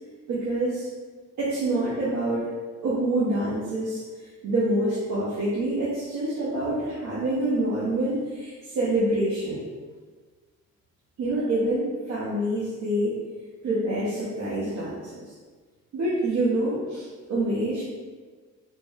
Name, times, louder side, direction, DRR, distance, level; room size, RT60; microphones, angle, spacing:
voice 1, 0.3-0.9 1.4-2.5 2.8-4.0 4.4-9.6 11.2-13.1 13.6-15.3 15.9-17.8, right 1 dB, 70° right, -9 dB, 1.0 m, -26 dB
4.1 x 2.1 x 3.3 m, 1.4 s
cardioid pair, 90°, 30 cm